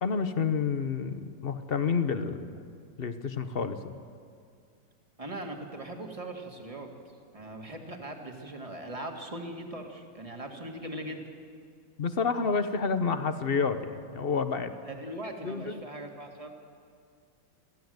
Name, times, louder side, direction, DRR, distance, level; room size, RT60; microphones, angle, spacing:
voice 1, 0.0-2.6 3.0-4.0 12.0-14.7 15.4-15.8, left 5 dB, 45° left, 9 dB, 0.7 m, -29 dB
voice 2, 5.2-6.9 7.3-11.2 14.8-16.5, right 1 dB, 20° right, 2 dB, 2.0 m, -40 dB
22.5 x 15.5 x 7.9 m, 2.3 s
omnidirectional pair, 2.1 m